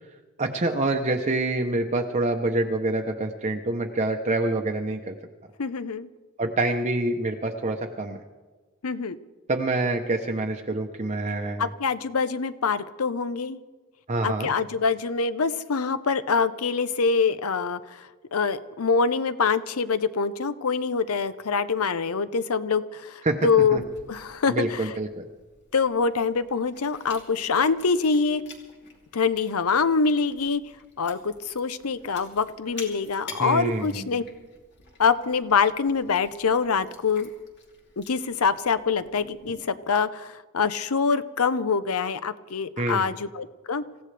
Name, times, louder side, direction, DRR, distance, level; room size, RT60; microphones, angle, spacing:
voice 1, 0.4-5.1 6.4-8.2 9.5-11.7 14.1-14.5 23.2-23.8 24.5-25.3 33.4-34.2 42.8-43.1, right 2 dB, 30° right, 3 dB, 0.8 m, -26 dB
voice 2, 5.6-6.1 8.8-9.2 11.6-13.6 14.2-24.9 25.7-28.4 29.1-30.6 31.0-34.2 35.0-37.3 38.0-43.8, left 5 dB, 75° left, 14 dB, 0.7 m, -25 dB
Chewing mastication, 23.8-39.5, left 4 dB, 55° left, 2.8 m, -49 dB
27.0 x 16.0 x 3.4 m, 1.3 s
head